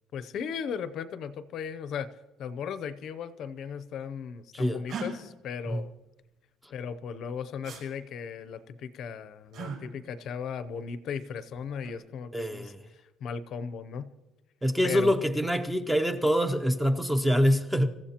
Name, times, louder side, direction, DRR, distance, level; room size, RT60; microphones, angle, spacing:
voice 1, 0.1-2.1 2.4-5.9 6.7-12.7 13.2-14.1 14.8-15.1, left 7 dB, 45° left, 14 dB, 0.6 m, -36 dB
sound 1, 4.9-5.1 7.6-7.8 9.5-9.8 11.6-12.0, right 4 dB, 50° right, 5.2 m, -37 dB
voice 2, 12.3-12.8 14.6-17.9, equal, 5° right, 7 dB, 0.6 m, -25 dB
26.0 x 14.5 x 2.9 m, 1.1 s
cardioid pair, 175°, 0 cm